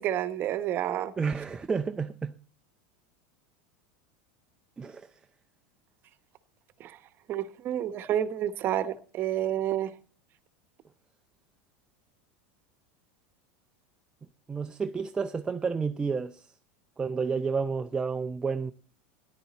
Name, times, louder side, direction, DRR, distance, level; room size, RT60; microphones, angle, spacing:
voice 1, 0.0-1.1 6.8-7.0 7.3-9.9, right 11 dB, 40° right, 1.0 m, -29 dB
voice 2, 1.2-2.3 4.8-5.1 14.5-16.5 17.0-18.7, right 5 dB, 15° right, 0.5 m, -30 dB
13.5 x 11.0 x 4.1 m
supercardioid pair, 135°, 6 cm